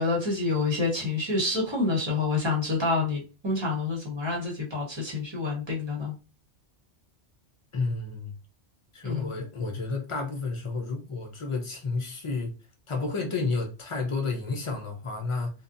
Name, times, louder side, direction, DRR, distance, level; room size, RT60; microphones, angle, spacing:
voice 1, 0.0-6.1 9.0-9.3, left 3 dB, 25° right, 0.9 m, -28 dB
voice 2, 7.7-8.3 8.9-12.5 12.9-15.5, left 3 dB, 55° left, 0.3 m, -31 dB
2.6 x 2.2 x 2.5 m
omnidirectional pair, 1.2 m